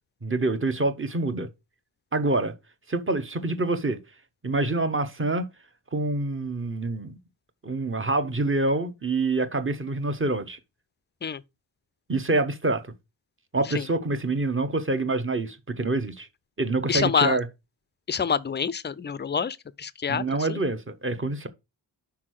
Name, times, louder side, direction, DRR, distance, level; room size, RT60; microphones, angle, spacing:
voice 1, 0.2-1.5 2.1-2.5 2.9-4.0 4.4-5.5 5.9-7.2 7.6-10.6 12.1-12.9 13.5-16.3 16.6-17.5 20.1-21.5, right 2 dB, 25° right, 0.8 m, -26 dB
voice 2, 16.9-17.4 18.1-20.6, left 6 dB, 25° left, 0.3 m, -27 dB
5.9 x 4.6 x 6.3 m
wide cardioid pair, 150°, 47 cm